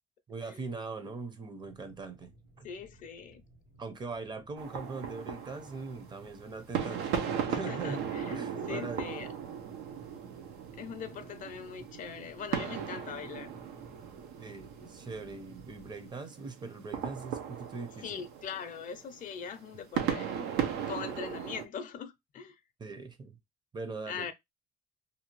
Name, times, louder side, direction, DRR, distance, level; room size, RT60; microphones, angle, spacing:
voice 1, 0.3-2.7 3.8-9.1 14.4-18.2 19.7-19.8 22.8-23.4 23.7-24.3, right 4 dB, 25° right, 0.6 m, -41 dB
sound 1, 1.6-16.1, right 1 dB, 70° right, 1.3 m, -57 dB
voice 2, 2.6-3.4 7.5-8.3 8.7-9.3 10.8-13.5 18.0-20.3 20.9-22.6 24.1-24.3, left 7 dB, 50° left, 0.5 m, -41 dB
sound 2, 4.6-21.7, right 8 dB, 85° right, 0.6 m, -37 dB
2.7 x 2.3 x 3.0 m
cardioid pair, 110°, 17 cm